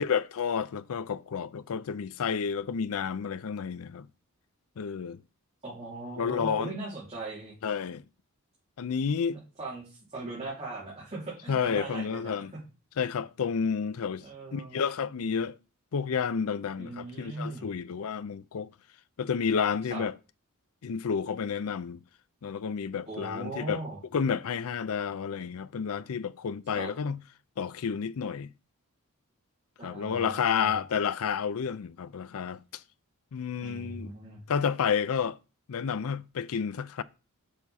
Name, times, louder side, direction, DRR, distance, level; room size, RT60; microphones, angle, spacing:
voice 1, 0.0-4.1 4.8-5.2 6.2-6.7 7.6-8.0 8.8-9.4 11.5-12.5 13.0-14.2 14.5-15.6 15.9-18.7 19.2-20.1 20.8-22.0 22.4-23.8 24.1-27.2 27.6-28.5 29.8-32.8 33.3-34.1 34.5-35.4 35.7-37.0, left 6 dB, 70° left, 0.5 m, -30 dB
voice 2, 5.6-7.5 9.3-12.6 14.2-14.8 16.8-17.7 19.9-20.0 23.1-24.0 26.7-26.9 29.8-30.7 33.6-34.4, right 2 dB, 30° right, 3.0 m, -39 dB
7.0 x 5.9 x 4.1 m
head